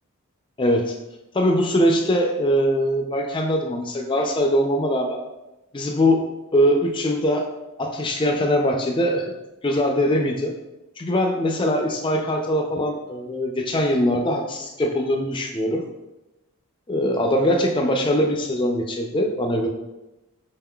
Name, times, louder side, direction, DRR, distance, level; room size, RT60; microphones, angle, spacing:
voice 1, 0.6-1.0 1.3-5.2 5.7-6.2 6.5-7.5 7.8-9.3 9.6-10.5 11.0-15.9 16.9-19.7, equal, 20° left, 3 dB, 0.3 m, -22 dB
5.0 x 3.7 x 2.2 m, 1.0 s
head